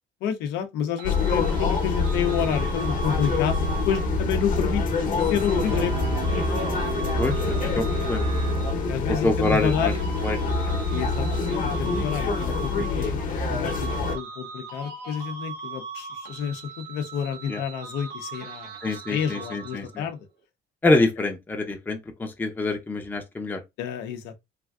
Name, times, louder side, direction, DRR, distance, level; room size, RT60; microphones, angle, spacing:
voice 1, 0.2-6.1 8.0-8.1 8.9-10.1 10.9-13.2 13.5-18.8 19.1-20.2 23.8-24.4, left 8 dB, 90° left, 0.6 m, -29 dB
sound 1, 1.0-14.2, left 3 dB, 50° left, 0.8 m, -26 dB
sound 2, 1.0-4.3 5.2-9.0 9.4-13.4 13.6-20.0, right 4 dB, 80° right, 0.9 m, -39 dB
Bowed string instrument, 4.9-9.2, right 7 dB, 40° right, 0.5 m, -37 dB
voice 2, 7.2-8.3 9.1-9.9 10.2-10.4 10.6-10.7 12.5-12.7 17.5-17.6 18.8-20.0 20.8-23.6, left 2 dB, 10° left, 0.5 m, -26 dB
3.3 x 2.5 x 2.3 m
cardioid pair, 110°, 17 cm